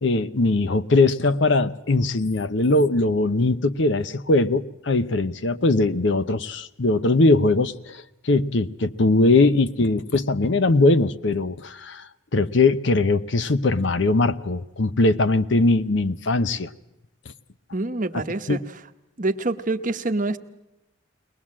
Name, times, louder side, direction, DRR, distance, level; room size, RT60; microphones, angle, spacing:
voice 1, 0.0-16.7 18.1-18.2 18.5-18.6, left 2 dB, 65° left, 0.8 m, -21 dB
voice 2, 17.7-18.6 19.2-20.4, right 2 dB, 40° right, 0.9 m, -26 dB
22.5 x 19.5 x 7.4 m
head